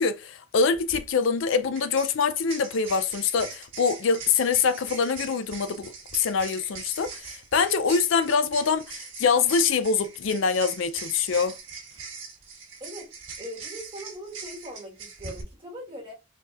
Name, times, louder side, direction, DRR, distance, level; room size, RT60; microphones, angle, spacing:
voice 1, 0.0-11.5, left 5 dB, 65° left, 0.4 m, -24 dB
sound 1, 0.8-1.0 1.8-15.4, right 5 dB, 65° right, 1.4 m, -41 dB
voice 2, 12.8-13.1 13.4-16.1, equal, 25° right, 1.4 m, -40 dB
4.1 x 4.0 x 2.4 m
head